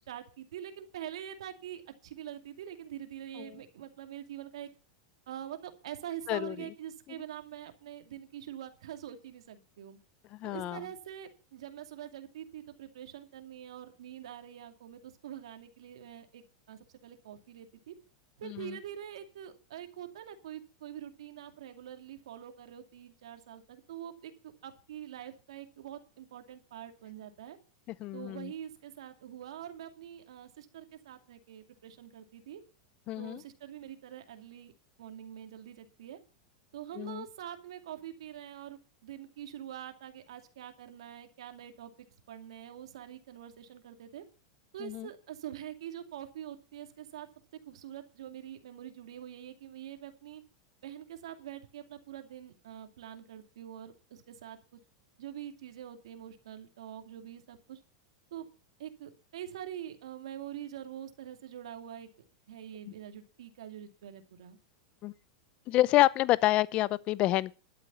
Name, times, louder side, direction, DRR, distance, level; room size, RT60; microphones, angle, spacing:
voice 1, 0.0-4.7 5.3-10.0 10.4-16.4 16.7-17.9 18.4-24.3 24.6-27.6 28.1-32.6 33.2-34.7 35.0-36.2 36.7-41.9 42.3-44.2 44.7-47.3 47.7-50.4 50.8-54.6 55.2-57.8 58.3-58.5 58.8-62.1 62.5-64.6, right 10 dB, 85° right, 2.5 m, -45 dB
voice 2, 10.4-10.8 18.4-18.8 28.0-28.5 33.1-33.4 37.0-37.2 44.8-45.1 65.0-65.1 65.7-67.5, left 16 dB, 40° left, 0.6 m, -28 dB
12.0 x 8.3 x 7.0 m
supercardioid pair, 130°, 3 cm